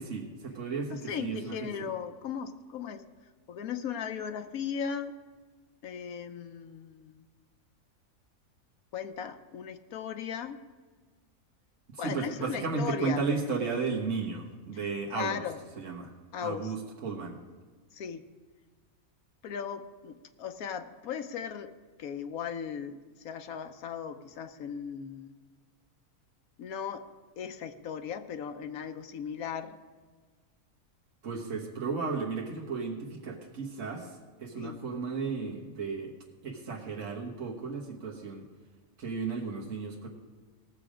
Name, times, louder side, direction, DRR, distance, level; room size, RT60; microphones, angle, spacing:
voice 1, 0.0-1.9 11.9-15.4 15.8-16.1 16.4-17.4 31.2-36.1 36.4-38.5 39.0-40.1, right 4 dB, 65° right, -2 dB, 1.6 m, -34 dB
voice 2, 0.9-3.0 3.5-5.2 5.8-7.3 8.9-10.6 12.0-13.2 15.1-15.6 16.3-16.7 17.9-18.3 19.4-21.7 22.0-25.3 26.6-27.1 27.4-29.8 34.6-34.8, left 7 dB, 85° left, 8 dB, 1.2 m, -37 dB
18.0 x 7.0 x 5.0 m, 1.5 s
omnidirectional pair, 1.5 m